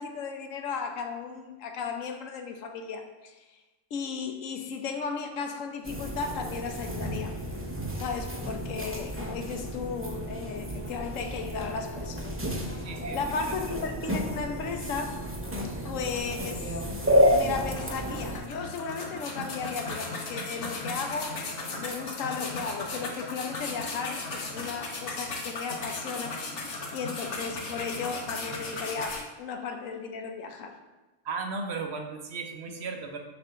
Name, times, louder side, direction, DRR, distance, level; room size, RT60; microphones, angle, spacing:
voice 1, 0.0-3.6 3.9-7.4 8.0-12.3 12.7-15.2 15.9-16.8 17.3-21.4 21.8-26.4 26.9-30.8, left 5 dB, 85° left, 5 dB, 1.1 m, -35 dB
sound 1, 5.8-18.4, equal, 15° right, 0.5 m, -30 dB
voice 2, 12.8-13.5 31.2-33.2, right 4 dB, 60° right, 4 dB, 0.9 m, -36 dB
sound 2, 15.4-15.5 15.8-16.8 17.2-17.3 17.7-29.2, left 2 dB, 65° left, 1.2 m, -37 dB
6.7 x 2.6 x 5.5 m, 1.1 s
omnidirectional pair, 1.3 m